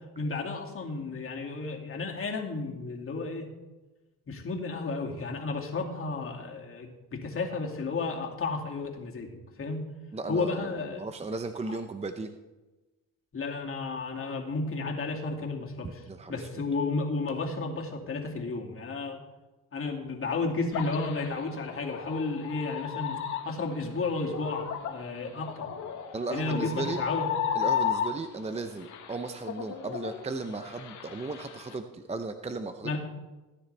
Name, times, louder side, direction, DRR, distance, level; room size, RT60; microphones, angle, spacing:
voice 1, 0.2-3.5 4.3-9.8 10.3-11.1 11.7-11.8 13.3-16.0 16.3-19.2 19.7-23.2 23.4-25.7 26.3-27.3 32.8-33.0, left 3 dB, 40° left, 0 dB, 2.4 m, -32 dB
voice 2, 10.1-12.3 16.1-16.5 26.1-27.0 27.6-33.0, right 3 dB, 20° right, 8 dB, 0.6 m, -36 dB
sound 1, 20.7-28.5 28.8-31.8, left 8 dB, 60° left, 1.4 m, -34 dB
17.5 x 9.8 x 3.4 m, 1.1 s
cardioid pair, 100°, 34 cm